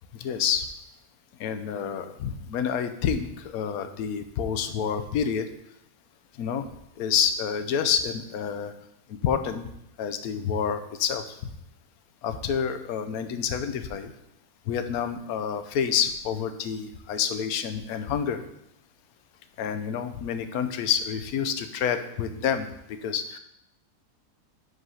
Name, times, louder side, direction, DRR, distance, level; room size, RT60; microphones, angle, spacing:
voice 1, 0.1-0.7 1.4-5.5 6.4-6.6 7.0-8.7 9.1-9.7 10.0-11.4 12.2-14.1 14.7-18.4 19.6-23.4, left 7 dB, 70° left, 9 dB, 1.1 m, -28 dB
8.0 x 3.9 x 5.6 m, 0.79 s
omnidirectional pair, 1.7 m